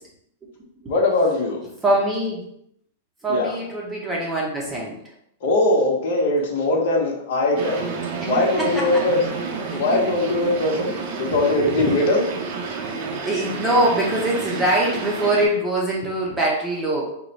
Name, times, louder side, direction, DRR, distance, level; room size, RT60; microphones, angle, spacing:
voice 1, 0.9-1.6 3.3-3.5 5.4-7.9 8.2-9.2 9.7-12.2, left 2 dB, 60° left, -2 dB, 1.1 m, -21 dB
voice 2, 1.8-2.4 3.2-5.0 8.6-9.0 9.7-9.8 11.3-11.4 11.7-12.0 13.2-17.1, right 1 dB, 10° right, -3 dB, 0.8 m, -23 dB
sound 1, 7.6-15.5, right 5 dB, 45° right, 0.7 m, -30 dB
4.8 x 2.2 x 4.0 m, 0.75 s
supercardioid pair, 160°, 0 cm